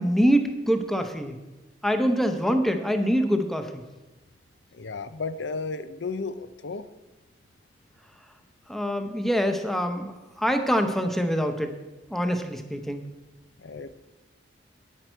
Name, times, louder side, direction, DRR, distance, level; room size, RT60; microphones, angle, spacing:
voice 1, 0.0-1.4 1.8-3.8 8.7-11.7 12.1-13.1, equal, ahead, 6 dB, 0.8 m, -25 dB
voice 2, 4.7-6.9 13.6-14.0, left 4 dB, 90° left, 12 dB, 0.6 m, -33 dB
10.5 x 9.2 x 4.5 m, 1.1 s
head